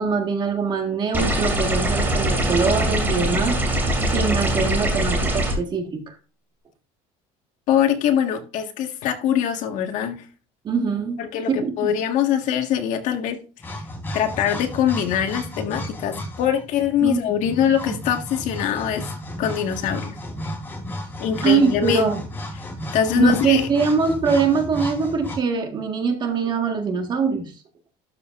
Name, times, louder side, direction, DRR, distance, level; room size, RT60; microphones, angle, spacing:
voice 1, 0.0-6.1 10.6-11.2 11.5-11.9 17.0-17.2 17.6-18.0 21.4-22.2 23.1-27.5, right 5 dB, 30° right, 1.7 m, -23 dB
sound 1, 1.1-5.5, right 1 dB, 15° right, 2.6 m, -22 dB
voice 2, 7.7-10.2 11.2-13.4 14.1-19.1 19.4-20.2 21.2-22.0 22.9-23.6, left 9 dB, 55° left, 1.7 m, -23 dB
sound 2, 13.6-25.4, left 1 dB, 15° left, 3.5 m, -33 dB
12.5 x 6.6 x 2.6 m
cardioid pair, 155°, 15 cm